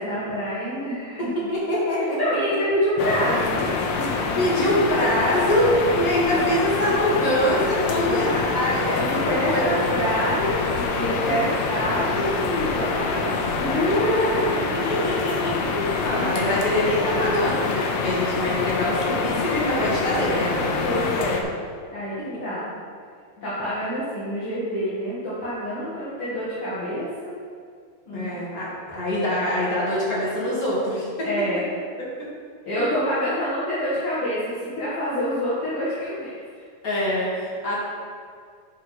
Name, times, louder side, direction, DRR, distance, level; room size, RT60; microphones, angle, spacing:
voice 1, 0.0-1.4 2.2-3.7 4.0-4.4 6.8-7.0 8.0-8.3 8.9-14.5 16.1-16.6 17.0-17.3 20.8-21.5 21.9-22.7 23.4-27.4 28.1-28.4 31.2-31.7 32.7-36.4, equal, 45° left, -11 dB, 2.1 m, -27 dB
voice 2, 1.2-2.2 2.5-2.6 4.4-9.7 14.6-20.7 28.1-31.3 32.8-33.0 36.8-37.7, left 1 dB, 25° left, -8 dB, 2.5 m, -24 dB
sound 1, 3.0-21.4, left 4 dB, 80° left, 2.5 m, -26 dB
8.3 x 5.5 x 5.9 m, 2.2 s
omnidirectional pair, 4.5 m